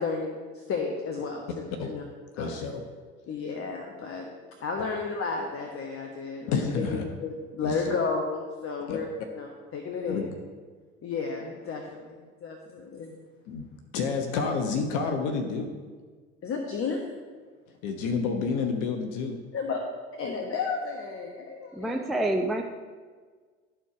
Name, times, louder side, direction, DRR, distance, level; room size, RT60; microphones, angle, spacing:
voice 1, 0.0-2.0 2.4-2.5 3.3-4.3 4.6-9.1 9.4-10.3 11.0-13.1 16.4-17.0 19.5-19.8 20.2-22.0, left 4 dB, 40° left, 2 dB, 1.2 m, -32 dB
voice 2, 2.4-2.9 4.8-4.9 6.5-7.0 7.6-7.9 8.9-9.0 10.1-10.4 13.5-13.7 13.9-15.7 17.8-19.4, left 5 dB, 60° left, 5 dB, 1.1 m, -29 dB
voice 3, 21.7-22.6, right 1 dB, ahead, 2 dB, 0.7 m, -27 dB
12.5 x 4.3 x 5.0 m, 1.5 s
hypercardioid pair, 65°, 34 cm